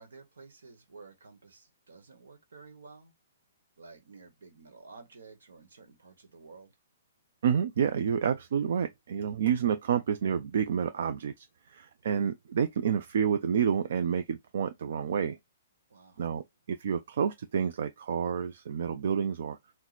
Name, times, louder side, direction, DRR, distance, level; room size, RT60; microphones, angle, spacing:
voice 1, 0.0-3.1 3.8-6.7 15.9-16.3, right 4 dB, 80° right, 1.1 m, -52 dB
voice 2, 7.4-15.4 16.2-19.6, right 7 dB, 65° right, 0.4 m, -29 dB
3.0 x 2.1 x 3.9 m
hypercardioid pair, 140°, 0 cm